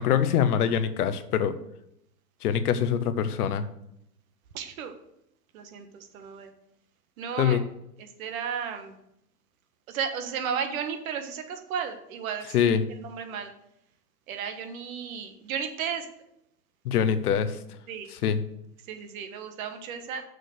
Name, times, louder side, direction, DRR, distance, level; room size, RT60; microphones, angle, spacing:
voice 1, 0.0-1.6 2.4-3.6 7.4-7.6 12.5-12.8 16.8-17.6 18.2-18.4, left 8 dB, 65° left, 12 dB, 0.9 m, -24 dB
voice 2, 4.5-4.9 5.5-6.5 7.2-7.6 8.0-9.0 9.9-13.5 14.3-16.1 17.9-18.1 18.8-20.2, right 7 dB, 60° right, 6 dB, 1.4 m, -34 dB
6.5 x 6.3 x 6.5 m, 0.79 s
hypercardioid pair, 110°, 48 cm